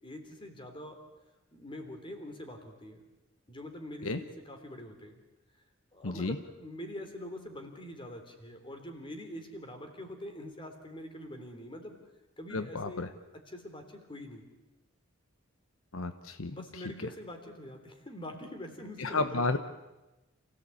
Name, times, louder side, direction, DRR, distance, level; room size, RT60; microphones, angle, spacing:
voice 1, 0.0-1.0 1.5-3.0 3.5-5.2 5.9-12.0 12.4-13.0 13.5-14.5 16.5-19.6, left 1 dB, 25° left, 5 dB, 3.4 m, -44 dB
voice 2, 6.0-6.4 12.5-13.1 15.9-16.6 19.0-19.6, left 3 dB, 75° left, 10 dB, 1.0 m, -32 dB
28.0 x 16.5 x 8.5 m, 1.0 s
head